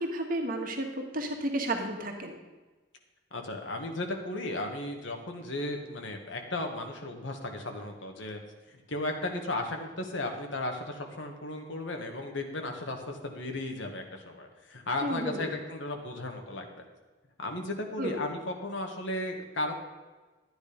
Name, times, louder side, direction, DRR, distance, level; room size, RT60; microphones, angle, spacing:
voice 1, 0.0-2.3 15.0-15.5 18.0-18.2, right 1 dB, 45° right, 3 dB, 1.7 m, -32 dB
voice 2, 3.3-8.4 8.7-16.8 17.4-19.8, left 2 dB, 65° left, 3 dB, 1.6 m, -35 dB
13.0 x 9.7 x 5.1 m, 1.2 s
head